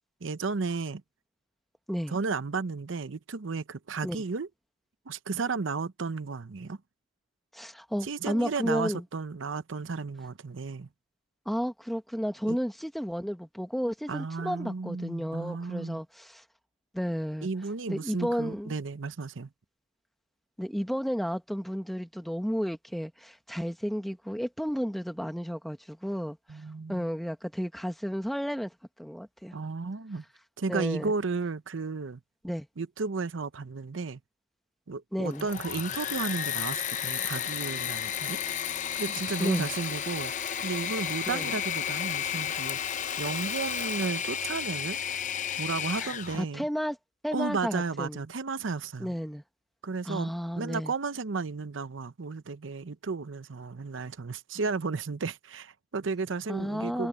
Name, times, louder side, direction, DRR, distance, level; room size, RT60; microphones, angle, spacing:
voice 1, 0.2-1.0 2.1-4.5 5.1-6.8 8.0-10.9 12.5-12.6 14.1-16.0 17.4-19.5 26.5-27.1 29.5-30.2 30.6-32.2 32.8-34.2 34.9-38.4 38.9-40.3 40.6-42.8 43.2-45.0 45.6-46.6 47.3-49.1 49.8-57.1, right 4 dB, 85° right, 0.7 m, -33 dB
voice 2, 7.5-9.0 11.4-16.4 16.9-17.5 17.9-18.7 20.6-26.4 26.9-28.7 29.0-29.5 30.7-31.1 32.4-32.7 35.1-35.5 39.4-39.7 41.3-41.5 46.0-47.0 47.2-48.2 49.0-49.4 50.1-50.9 56.5-57.1, equal, ahead, 1.3 m, -32 dB
Engine / Mechanisms, 35.2-46.4, left 9 dB, 40° left, 0.6 m, -32 dB
head